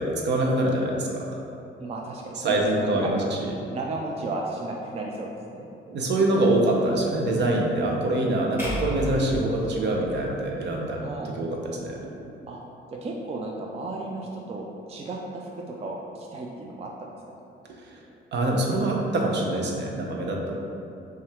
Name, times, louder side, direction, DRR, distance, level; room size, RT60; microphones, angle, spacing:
voice 1, 0.0-1.4 2.3-3.5 5.9-12.0 18.3-20.5, right 1 dB, 60° right, -1 dB, 0.7 m, -25 dB
voice 2, 1.8-3.1 3.7-5.7 11.0-11.3 12.5-12.6 12.9-17.1, right 2 dB, 30° right, -1 dB, 0.4 m, -34 dB
sound 1, 8.6-10.8, equal, 10° right, 1.2 m, -34 dB
5.3 x 2.4 x 3.4 m, 2.7 s
cardioid pair, 90°, 20 cm